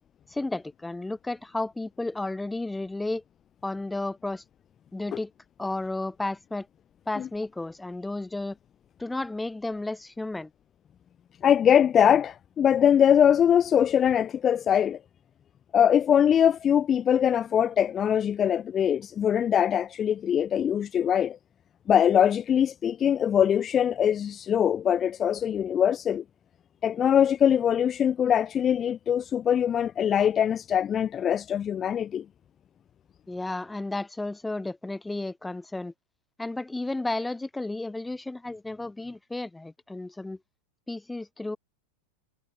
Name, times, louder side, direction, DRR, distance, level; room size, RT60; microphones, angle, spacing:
voice 1, 0.3-3.2 3.6-4.4 4.9-5.3 5.6-6.7 7.1-8.6 9.0-10.5 33.3-35.9 36.4-40.4 40.9-41.6, left 2 dB, 5° left, 7.7 m, -32 dB
voice 2, 11.4-15.0 15.7-21.4 21.9-26.2 26.8-32.2, left 9 dB, 25° left, 4.3 m, -22 dB
figure-of-eight pair, 90°, 0 cm